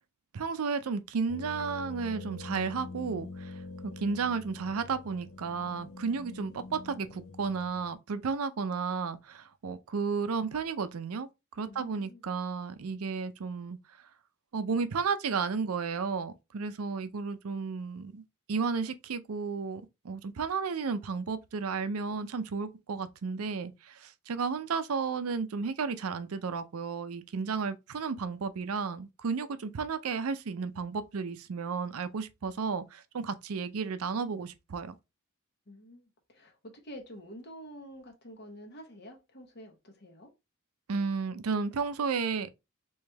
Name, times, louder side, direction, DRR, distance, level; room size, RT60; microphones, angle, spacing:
voice 1, 0.3-3.6 4.0-11.3 11.6-13.8 14.5-18.2 18.5-35.0 40.9-42.5, right 5 dB, 80° right, 0.5 m, -33 dB
sound 1, 1.3-7.9, left 3 dB, 75° left, 0.5 m, -45 dB
voice 2, 11.6-12.2 35.7-40.3, equal, 50° left, 1.1 m, -48 dB
3.3 x 3.1 x 3.3 m
head